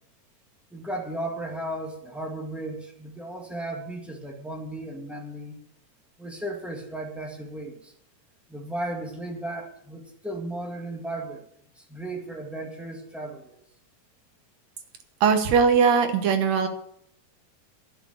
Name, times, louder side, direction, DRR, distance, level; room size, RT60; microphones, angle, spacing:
voice 1, 0.7-5.6 6.2-7.9 8.5-11.4 11.7-13.6, right 1 dB, ahead, 0 dB, 0.4 m, -35 dB
voice 2, 15.2-16.7, right 6 dB, 65° right, 7 dB, 2.1 m, -20 dB
10.5 x 6.8 x 9.1 m, 0.72 s
omnidirectional pair, 3.8 m